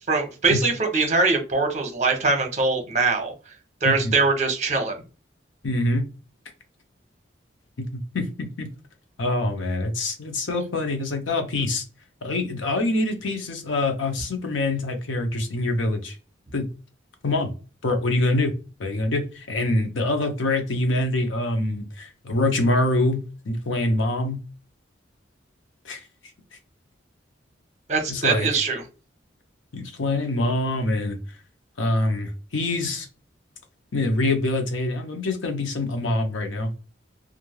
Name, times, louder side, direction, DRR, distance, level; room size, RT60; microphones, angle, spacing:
voice 1, 0.1-3.3 3.8-4.9 27.9-28.8, right 3 dB, 35° right, 0.7 m, -22 dB
voice 2, 5.6-6.0 8.1-8.7 9.2-11.8 12.2-16.2 16.5-16.7 17.2-17.5 17.8-18.5 18.8-24.4 25.8-26.0 28.1-28.5 29.7-31.2 31.8-33.1 33.9-36.7, left 2 dB, 85° left, 0.7 m, -25 dB
3.1 x 2.4 x 2.3 m
head